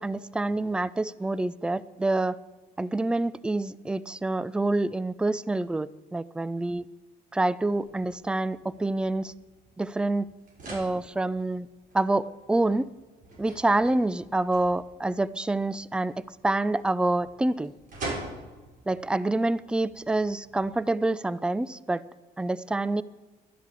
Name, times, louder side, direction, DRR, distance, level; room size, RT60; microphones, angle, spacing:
voice 1, 0.0-2.4 2.8-6.8 7.3-9.3 9.8-10.3 10.7-11.7 11.9-12.9 13.4-16.1 16.4-17.7 18.9-22.0 22.4-23.0, right 2 dB, 5° right, 19 dB, 0.4 m, -27 dB
sound 1, 7.8-20.7, right 2 dB, 50° right, 5.9 m, -45 dB
12.0 x 10.5 x 8.2 m, 1.2 s
cardioid pair, 110°, 17 cm